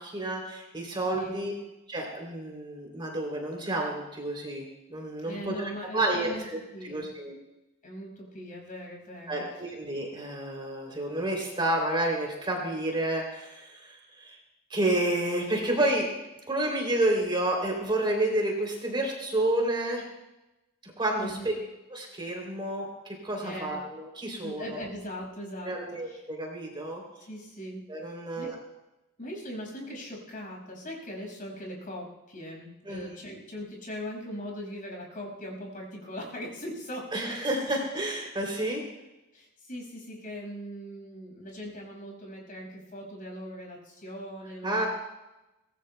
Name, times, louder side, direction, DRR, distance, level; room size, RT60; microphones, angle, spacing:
voice 1, 0.0-1.5 1.9-4.6 4.9-6.3 6.8-7.3 9.3-14.4 14.7-16.1 16.5-20.0 21.0-21.5 21.9-24.8 25.6-27.0 27.9-28.5 32.9-33.1 37.1-38.8 44.6-44.9, right 1 dB, 25° right, 0 dB, 3.0 m, -30 dB
voice 2, 1.1-1.5 5.2-6.4 6.7-7.1 7.8-9.4 21.2-21.6 23.4-23.8 24.4-26.2 27.2-27.9 28.4-28.5 29.2-37.4 39.3-44.9, equal, 40° left, 0 dB, 5.5 m, -40 dB
24.0 x 19.0 x 2.2 m, 0.98 s
head